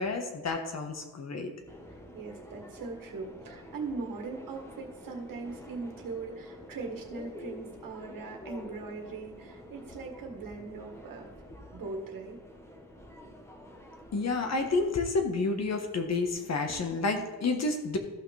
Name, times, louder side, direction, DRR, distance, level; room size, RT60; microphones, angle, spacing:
voice 1, 0.0-1.5 14.1-18.0, left 3 dB, 50° left, 4 dB, 1.4 m, -30 dB
Subway metro underground, 1.7-14.8, left 1 dB, 10° left, 1.1 m, -48 dB
voice 2, 2.1-11.3 11.7-12.4, right 4 dB, 75° right, 1 dB, 1.7 m, -40 dB
14.0 x 5.9 x 3.4 m, 1.2 s
wide cardioid pair, 150°, 34 cm